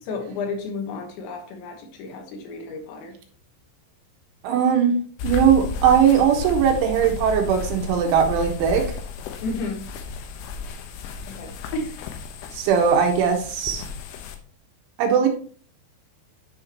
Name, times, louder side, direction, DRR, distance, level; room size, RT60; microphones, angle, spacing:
voice 1, 0.0-3.2 9.4-9.9 11.3-12.0, left 3 dB, 75° left, 2 dB, 3.4 m, -32 dB
voice 2, 4.4-4.9 5.2-8.9 12.5-13.8 15.0-15.3, right 7 dB, 75° right, 2 dB, 3.6 m, -19 dB
sound 1, 5.2-14.4, left 5 dB, 90° left, 3.5 m, -33 dB
10.0 x 5.7 x 3.0 m, 0.44 s
omnidirectional pair, 5.6 m